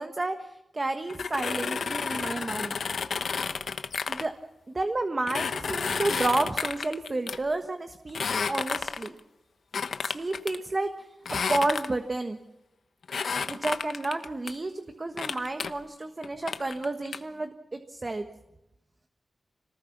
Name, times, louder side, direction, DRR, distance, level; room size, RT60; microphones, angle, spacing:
voice 1, 0.0-2.8 4.1-4.3 4.7-8.2 8.5-9.1 10.0-11.1 11.5-12.4 13.5-18.3, right 2 dB, 30° right, 7 dB, 1.4 m, -31 dB
sound 1, 1.1-4.3 5.3-7.4 8.1-9.2 9.7-10.6 11.3-12.1 13.1-14.5 15.2-15.7 16.2-17.2, left 5 dB, 75° left, 1.1 m, -31 dB
26.0 x 19.5 x 7.3 m, 0.94 s
wide cardioid pair, 95°, 0 cm